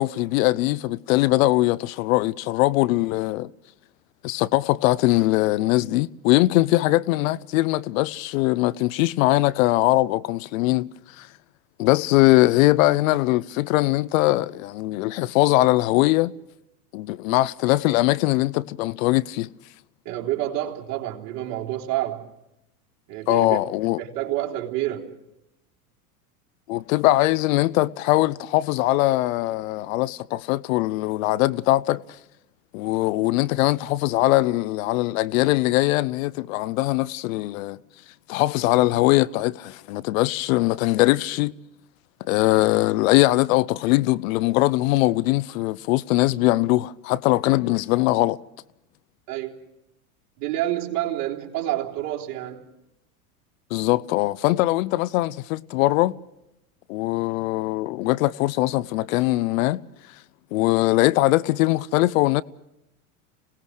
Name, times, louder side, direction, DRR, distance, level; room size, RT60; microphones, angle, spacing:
voice 1, 0.0-3.5 4.2-10.9 11.2-11.3 11.8-16.3 16.9-19.5 23.3-24.0 26.7-32.0 32.7-37.8 38.3-41.5 42.2-48.4 53.7-56.1 56.9-59.8 60.5-62.4, left 18 dB, 65° left, 0.7 m, -21 dB
voice 2, 20.1-22.3 23.1-23.6 24.0-25.2 49.3-49.5 50.4-52.7, right 14 dB, 55° right, 3.7 m, -28 dB
26.0 x 18.5 x 6.4 m
hypercardioid pair, 100°, 44 cm